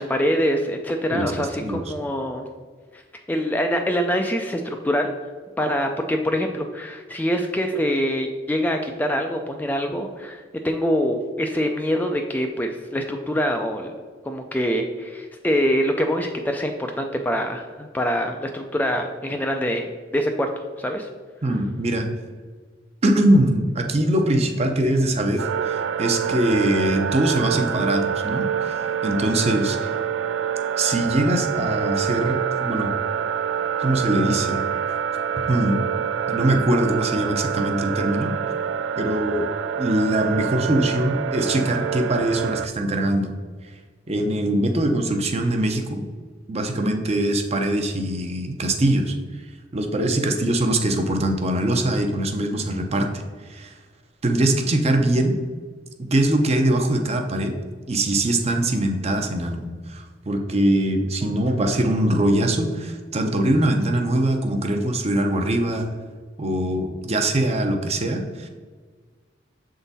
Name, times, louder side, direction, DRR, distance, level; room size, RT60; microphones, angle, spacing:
voice 1, 0.0-2.5 2.9-3.0 3.3-5.1 5.6-13.9 14.2-21.1, equal, 10° left, 4 dB, 0.3 m, -24 dB
voice 2, 21.4-22.1 23.0-29.9 30.8-32.9 33.8-34.6 35.5-35.8 36.3-38.3 39.0-39.5 39.8-43.3 44.1-46.0 46.5-49.2 49.7-53.7 54.2-55.4 56.1-57.5 57.9-65.9 66.4-68.5, right 1 dB, 35° right, 4 dB, 0.6 m, -22 dB
sound 1, 25.4-42.7, right 8 dB, 90° right, 0.3 m, -26 dB
7.0 x 3.8 x 4.0 m, 1.5 s
head